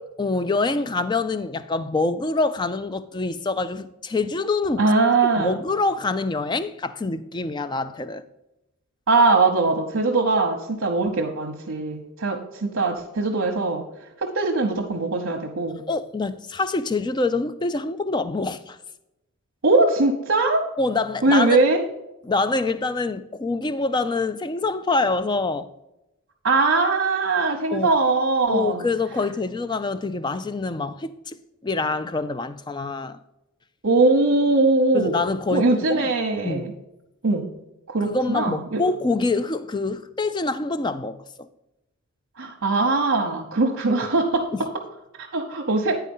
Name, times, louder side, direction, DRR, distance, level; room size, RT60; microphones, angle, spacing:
voice 1, 0.2-4.9 5.3-8.2 15.9-18.8 20.8-21.6 22.2-25.7 27.7-27.9 28.5-31.4 31.6-33.2 34.9-36.1 36.4-36.7 38.0-41.2 44.5-44.6, left 3 dB, 20° left, 0.4 m, -25 dB
voice 2, 4.8-5.6 9.1-13.8 14.2-15.8 19.6-20.6 21.2-21.8 26.4-28.9 33.8-35.1 35.5-36.7 37.2-37.5 37.9-38.8 42.4-44.5 45.3-46.0, right 3 dB, 60° right, 0.9 m, -21 dB
9.7 x 4.7 x 5.4 m
head